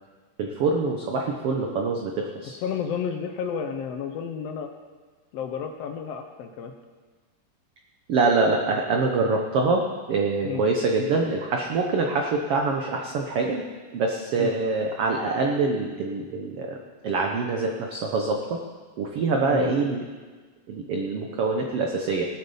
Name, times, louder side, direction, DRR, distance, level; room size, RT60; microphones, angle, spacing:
voice 1, 0.4-2.6 8.1-13.6 13.9-16.8 17.0-18.6 19.0-20.0 20.7-22.2, right 3 dB, 75° right, 2 dB, 1.3 m, -25 dB
voice 2, 2.6-4.7 5.3-6.7 10.4-10.6 14.4-14.5 19.5-19.8, left 7 dB, 85° left, 5 dB, 1.4 m, -31 dB
18.5 x 7.7 x 5.5 m, 1.4 s
omnidirectional pair, 4.0 m